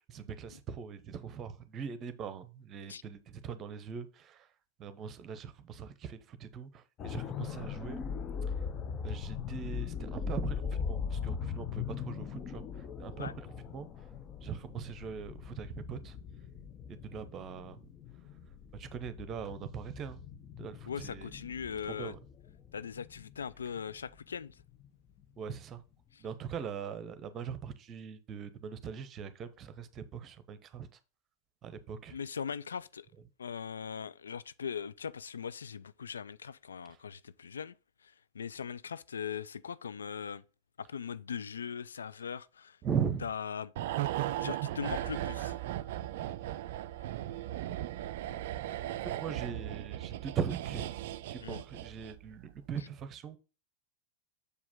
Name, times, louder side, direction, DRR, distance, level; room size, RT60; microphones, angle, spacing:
voice 1, 0.1-4.5 4.8-8.0 9.0-12.6 13.0-13.4 13.7-13.9 14.4-16.2 16.9-17.8 18.7-20.2 20.6-21.3 21.9-22.2 25.4-25.8 26.2-30.9 31.6-32.2 42.8-43.3 49.0-50.9 51.3-53.4, right 7 dB, 30° right, 0.8 m, -40 dB
sound 1, 7.0-24.9 25.2-25.4, left 6 dB, 30° left, 0.7 m, -40 dB
voice 2, 20.9-22.1 22.7-24.6 26.1-26.2 32.1-33.1 33.4-37.8 38.0-40.4 40.8-42.8 43.2-43.7 44.4-45.5 51.4-51.6, left 7 dB, 70° left, 0.3 m, -40 dB
sound 2, 43.8-52.3 52.6-52.7, right 13 dB, 55° right, 0.3 m, -37 dB
6.8 x 4.8 x 3.6 m
figure-of-eight pair, 90°, 0 cm